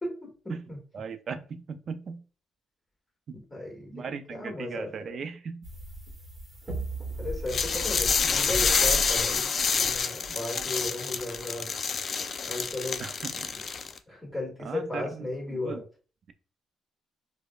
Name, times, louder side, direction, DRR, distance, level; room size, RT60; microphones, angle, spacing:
voice 1, 0.0-0.3 0.7-0.8 3.5-4.9 7.2-11.7 12.4-13.0 14.1-15.8, left 2 dB, 20° left, 0 dB, 1.5 m, -35 dB
voice 2, 0.9-2.2 3.3-3.4 3.9-5.7 10.3-10.4 13.0-13.5 14.6-15.8, right 5 dB, 55° right, 10 dB, 0.4 m, -38 dB
sound 1, 5.6-11.5, equal, 30° right, 1.1 m, -38 dB
sound 2, 7.5-14.0, left 5 dB, 45° left, 0.4 m, -28 dB
4.9 x 2.1 x 2.3 m, 0.38 s
cardioid pair, 90°, 0 cm